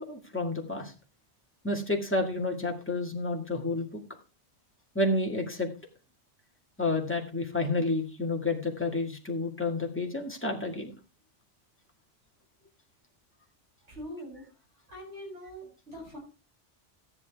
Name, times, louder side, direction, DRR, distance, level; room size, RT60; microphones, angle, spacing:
voice 1, 0.1-0.9 1.6-4.0 4.9-5.7 6.8-10.9, left 2 dB, 10° left, 0 dB, 2.0 m, -30 dB
voice 2, 13.9-14.4 14.9-16.2, equal, 70° right, -3 dB, 8.0 m, -43 dB
13.5 x 10.0 x 3.5 m, 0.33 s
omnidirectional pair, 1.2 m